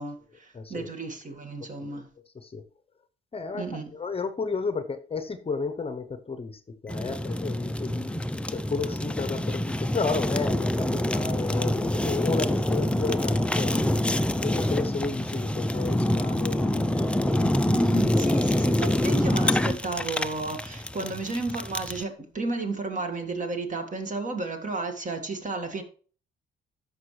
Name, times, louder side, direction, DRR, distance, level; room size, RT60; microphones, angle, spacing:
voice 1, 0.0-2.1 3.5-3.9 17.7-25.8, right 2 dB, 40° right, 1.8 m, -32 dB
voice 2, 0.5-0.9 1.6-1.7 2.3-2.6 3.3-13.8 14.4-17.5 18.3-18.4 21.0-21.1, left 4 dB, 30° left, 0.8 m, -33 dB
Fire, 6.9-22.0, left 1 dB, 5° left, 0.5 m, -26 dB
13.0 x 5.4 x 3.2 m
cardioid pair, 90°, 20 cm